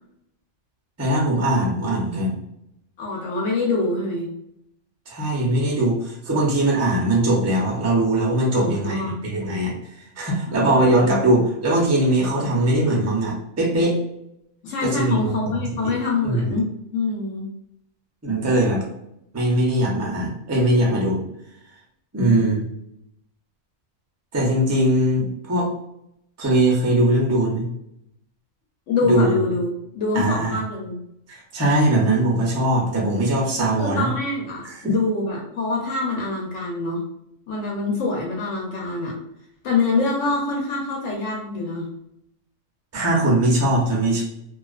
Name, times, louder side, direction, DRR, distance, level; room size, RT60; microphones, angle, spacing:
voice 1, 1.0-2.3 5.1-9.7 10.2-14.0 14.8-15.5 16.2-16.6 18.2-18.8 19.3-21.2 22.1-22.7 24.3-25.7 26.4-27.7 29.0-29.3 30.1-30.6 31.3-34.1 34.6-34.8 42.9-44.2, right 1 dB, 25° right, -3 dB, 0.3 m, -20 dB
voice 2, 3.0-4.3 8.5-9.2 10.6-11.2 14.6-16.7 16.9-17.5 28.9-31.0 33.7-37.0 37.5-39.2 39.6-41.9, left 3 dB, 70° left, -2 dB, 1.0 m, -25 dB
2.3 x 2.3 x 2.3 m, 0.78 s
omnidirectional pair, 1.4 m